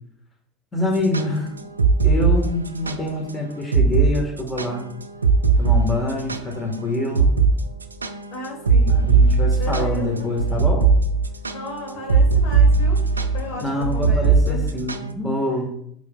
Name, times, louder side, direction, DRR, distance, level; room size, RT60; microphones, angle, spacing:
voice 1, 0.7-1.5 2.0-4.9 5.6-7.3 8.9-10.9 13.6-15.7, left 2 dB, 20° left, 0 dB, 1.7 m, -25 dB
sound 1, 1.0-3.0 3.3-3.4 3.7-4.1 4.4-6.8 7.1-7.5 7.8-15.1, right 4 dB, 80° right, 0.4 m, -18 dB
voice 2, 8.3-9.0 9.6-10.3 11.5-13.0 13.3-14.7, left 3 dB, 50° left, 1 dB, 1.8 m, -34 dB
6.8 x 6.4 x 2.4 m, 0.70 s
figure-of-eight pair, 65°, 0 cm